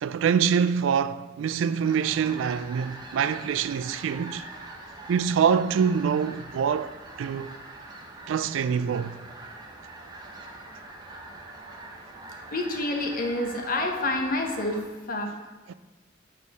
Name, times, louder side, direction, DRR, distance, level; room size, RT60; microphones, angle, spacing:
voice 1, 0.0-4.5 5.1-7.5 8.3-9.2 15.7-15.8, right 7 dB, 85° right, 0.3 m, -25 dB
sound 1, 1.8-14.8, right 2 dB, 20° right, 0.8 m, -43 dB
voice 2, 12.5-14.8 15.1-15.3, left 2 dB, 50° left, 0.9 m, -28 dB
7.2 x 4.2 x 4.7 m
head